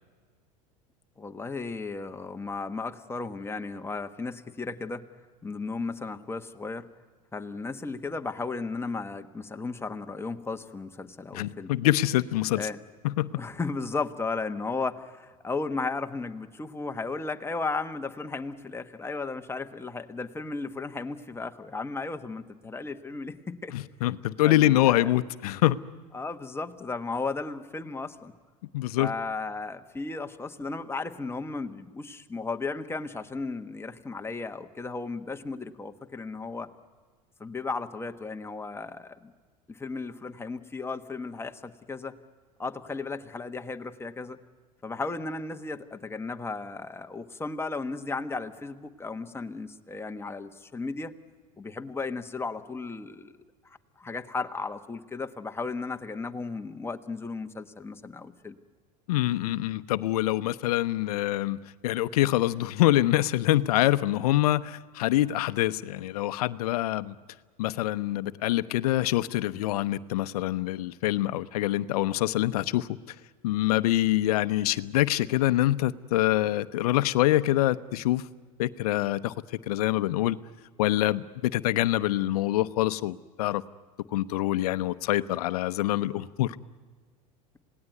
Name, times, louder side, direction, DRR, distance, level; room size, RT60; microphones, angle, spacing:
voice 1, 1.2-5.1 5.4-6.9 7.3-11.7 12.5-12.8 13.3-23.8 24.4-25.1 26.1-28.3 29.0-36.7 37.4-39.3 39.7-42.2 42.6-44.4 44.8-51.2 51.6-53.3 53.6-58.6, left 3 dB, 10° left, 6 dB, 1.4 m, -35 dB
voice 2, 11.3-12.7 13.0-13.3 23.7-25.8 28.7-29.1 59.1-61.6 61.8-67.1 67.6-72.9 73.4-78.2 78.6-79.3 79.7-80.4 80.8-83.6 84.1-86.6, left 15 dB, 75° left, 14 dB, 0.8 m, -25 dB
27.0 x 18.5 x 9.4 m, 1.5 s
hypercardioid pair, 90°, 19 cm